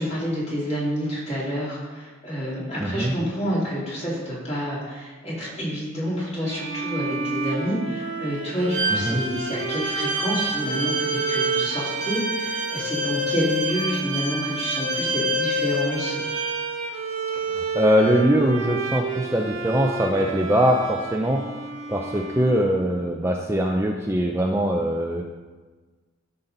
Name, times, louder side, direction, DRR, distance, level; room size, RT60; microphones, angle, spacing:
voice 1, 0.0-16.2, equal, 30° left, -7 dB, 3.3 m, -28 dB
voice 2, 2.8-3.1 8.9-9.2 17.3-21.4 21.9-25.2, equal, 15° right, 1 dB, 0.5 m, -22 dB
Bowed string instrument, 6.5-23.0, right 1 dB, 85° right, 1.4 m, -30 dB
Bowed string instrument 2, 8.7-16.6, right 3 dB, 5° left, 2.4 m, -29 dB
13.0 x 5.6 x 4.0 m, 1.3 s
head